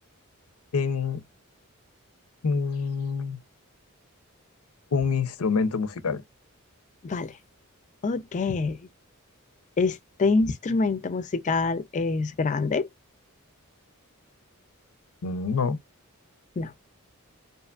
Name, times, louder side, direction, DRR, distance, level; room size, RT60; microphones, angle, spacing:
voice 1, 0.7-1.2 2.4-3.4 4.9-6.2 15.2-15.8, left 5 dB, 90° left, 0.6 m, -26 dB
voice 2, 8.0-8.8 9.8-12.9 16.6-16.7, left 3 dB, 35° left, 0.4 m, -26 dB
2.7 x 2.4 x 2.3 m
head